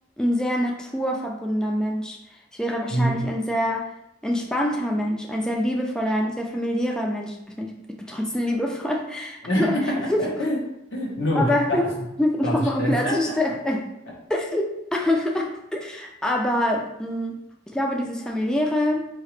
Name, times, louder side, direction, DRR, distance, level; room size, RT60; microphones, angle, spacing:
voice 1, 0.2-3.9 4.2-9.8 10.1-10.3 11.3-11.9 12.2-13.9 14.3-17.4 17.7-19.1, left 1 dB, 5° left, 0 dB, 0.3 m, -25 dB
voice 2, 2.9-3.2 9.4-10.6 10.9-11.8 12.4-13.3, equal, 80° left, -3 dB, 1.3 m, -25 dB
4.8 x 2.8 x 3.2 m, 0.86 s
head